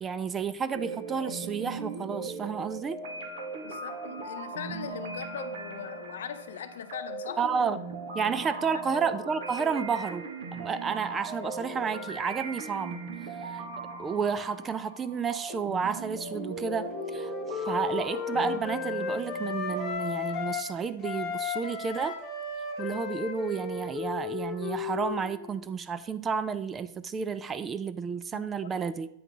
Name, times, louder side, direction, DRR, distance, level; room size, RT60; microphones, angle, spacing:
voice 1, 0.0-3.0 7.4-7.8 8.1-13.0 13.4-13.6 14.0-22.2 22.8-29.1, right 6 dB, 20° right, 0.4 m, -31 dB
sound 1, 0.7-19.9, right 3 dB, 60° right, 1.5 m, -39 dB
voice 2, 3.6-7.5 8.7-9.0 28.3-28.8, left 9 dB, 80° left, 0.7 m, -40 dB
Wind instrument woodwind instrument, 16.3-20.7 21.0-25.5, left 6 dB, 25° left, 1.5 m, -34 dB
8.5 x 3.6 x 5.4 m
hypercardioid pair, 135°, 0 cm